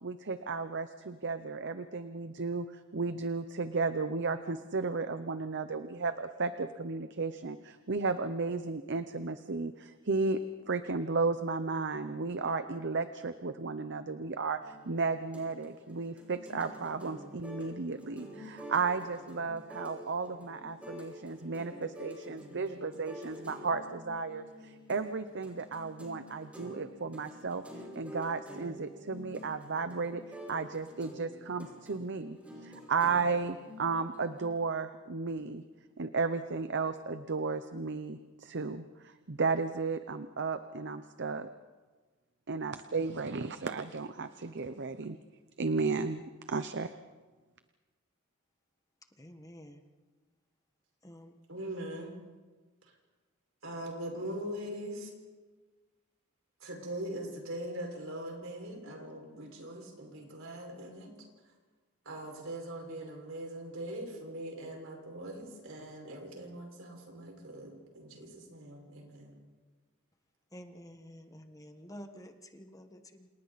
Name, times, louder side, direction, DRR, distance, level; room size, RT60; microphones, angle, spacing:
voice 1, 0.0-2.7 2.9-10.4 10.7-14.6 14.9-24.5 24.9-27.6 28.0-30.2 30.5-32.4 32.6-35.6 36.0-38.8 39.3-41.5 42.5-45.2 45.6-46.2 46.5-46.9, right 4 dB, 60° right, 10 dB, 0.8 m, -34 dB
sound 1, 14.6-34.5, equal, 5° right, 6.0 m, -48 dB
voice 2, 49.2-49.8 51.0-51.4 70.5-73.3, equal, 15° left, 6 dB, 1.5 m, -50 dB
voice 3, 51.5-52.2 53.6-55.1 56.6-61.1 62.1-69.4, right 1 dB, 75° right, 1 dB, 5.7 m, -41 dB
29.0 x 28.0 x 4.2 m, 1.3 s
head